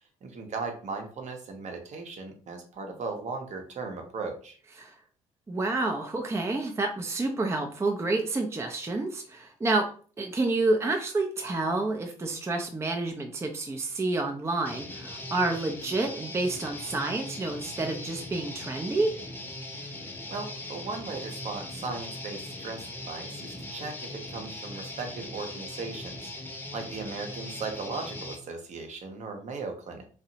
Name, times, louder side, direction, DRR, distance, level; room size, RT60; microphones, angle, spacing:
voice 1, 0.2-4.6 19.8-19.9 20.3-30.0, right 4 dB, 45° right, 4 dB, 0.7 m, -37 dB
voice 2, 5.5-9.9 10.2-19.1, right 2 dB, 15° right, 3 dB, 0.4 m, -29 dB
Guitar, 14.6-28.3, left 1 dB, 15° left, 0.8 m, -40 dB
2.7 x 2.0 x 2.7 m, 0.42 s
hypercardioid pair, 60°, 16 cm